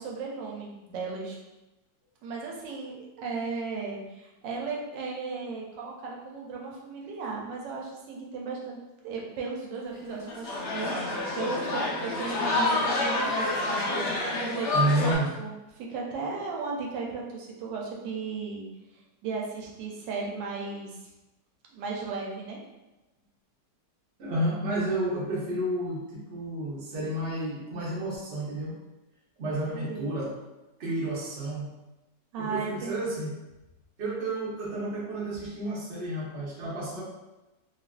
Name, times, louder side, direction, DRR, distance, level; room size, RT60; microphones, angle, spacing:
voice 1, 0.0-1.4 2.2-8.8 9.0-14.0 14.4-18.6 18.9-21.1 21.7-22.6 29.7-30.1 32.3-33.3, right 4 dB, 85° right, -1 dB, 1.2 m, -36 dB
sound 1, 9.9-15.2, left 2 dB, 60° left, 0.7 m, -28 dB
voice 2, 14.7-15.3 24.2-28.7 29.4-30.3 30.8-31.7 32.4-33.3 34.0-37.0, right 1 dB, 50° right, -6 dB, 0.8 m, -31 dB
3.0 x 2.4 x 2.2 m, 1.0 s
omnidirectional pair, 1.9 m